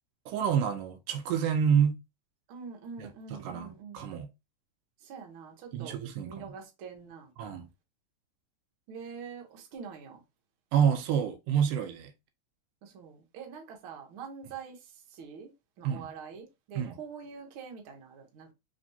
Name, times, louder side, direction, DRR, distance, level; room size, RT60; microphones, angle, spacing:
voice 1, 0.3-2.0 3.0-4.3 5.7-6.5 7.4-7.7 10.7-12.1 15.8-16.1 16.7-17.0, right 8 dB, 80° right, 2.2 m, -28 dB
voice 2, 2.5-4.1 5.0-6.0 6.3-7.3 8.9-10.2 12.8-14.8 15.1-15.5 15.8-18.5, right 6 dB, 65° right, 1.3 m, -45 dB
5.1 x 3.1 x 2.7 m
omnidirectional pair, 3.9 m